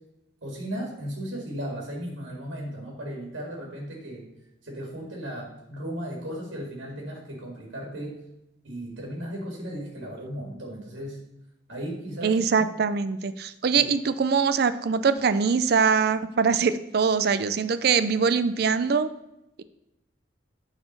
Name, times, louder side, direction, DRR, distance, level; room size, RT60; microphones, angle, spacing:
voice 1, 0.4-4.2 4.6-8.2 8.6-11.2 11.7-12.3 13.7-13.8, equal, 80° right, -1 dB, 1.9 m, -36 dB
voice 2, 12.2-19.1, right 5 dB, 55° right, 13 dB, 0.4 m, -23 dB
8.8 x 4.1 x 5.3 m, 0.90 s
head